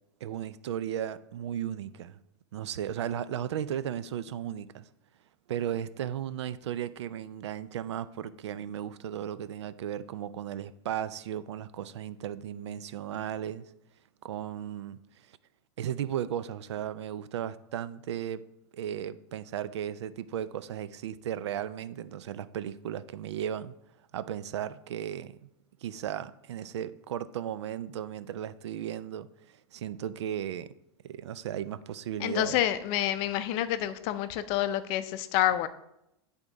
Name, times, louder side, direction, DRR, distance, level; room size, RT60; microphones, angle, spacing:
voice 1, 0.2-2.2 2.5-4.8 5.5-13.6 14.2-15.0 15.8-18.5 18.7-23.7 24.1-25.5 25.8-29.3 29.7-30.7 31.0-32.6, right 10 dB, 90° right, 0.4 m, -35 dB
voice 2, 32.2-35.7, left 12 dB, 45° left, 0.5 m, -28 dB
10.0 x 3.6 x 3.9 m
supercardioid pair, 135°, 14 cm